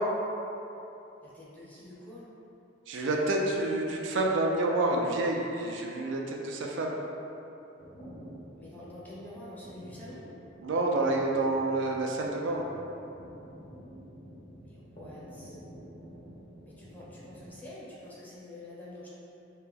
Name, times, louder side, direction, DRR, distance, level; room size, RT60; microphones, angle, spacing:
voice 1, 1.2-2.3 8.6-10.3 14.6-15.6 16.6-19.1, left 1 dB, 10° left, -8 dB, 0.7 m, -47 dB
voice 2, 2.9-7.0 10.6-12.7, right 2 dB, 70° right, 0 dB, 0.4 m, -28 dB
sound 1, 7.8-17.5, equal, 40° left, 0.9 m, -49 dB
3.3 x 2.8 x 3.4 m, 2.9 s
head